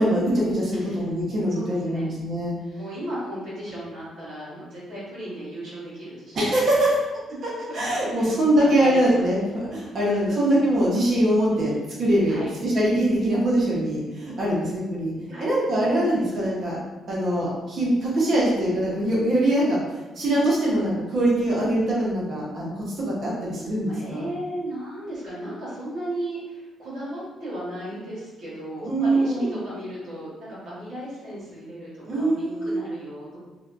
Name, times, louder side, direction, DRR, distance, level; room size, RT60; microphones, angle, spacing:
voice 1, 0.0-2.5 6.3-7.0 7.7-15.1 15.4-16.8 17.1-19.8 20.2-24.3 28.8-29.6 32.1-32.8, right 1 dB, 55° right, -5 dB, 0.7 m, -23 dB
voice 2, 1.5-2.2 2.7-6.5 8.1-9.2 12.3-12.5 15.3-16.3 23.9-33.4, right 1 dB, 75° right, -9 dB, 1.1 m, -35 dB
2.6 x 2.2 x 2.5 m, 1.2 s
cardioid pair, 90°, 0 cm